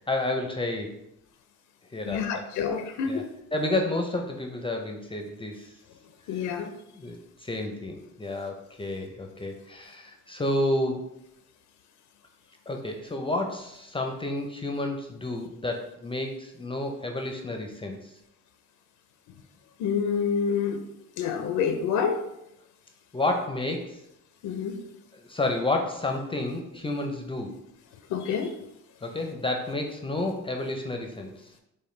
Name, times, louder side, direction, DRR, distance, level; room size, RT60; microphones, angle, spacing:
voice 1, 0.1-0.9 1.9-2.5 3.1-3.2 3.5-5.7 6.3-6.7 6.9-7.2 7.4-11.1 12.7-18.1 23.1-24.0 25.1-27.5 29.0-31.3, left 2 dB, 20° left, 2 dB, 0.4 m, -30 dB
voice 2, 2.1-3.3 6.3-6.7 19.8-20.8 21.2-22.2 24.4-24.8 28.1-28.5, left 6 dB, 85° left, 6 dB, 0.5 m, -27 dB
5.2 x 2.2 x 3.1 m, 0.83 s
cardioid pair, 90°, 30 cm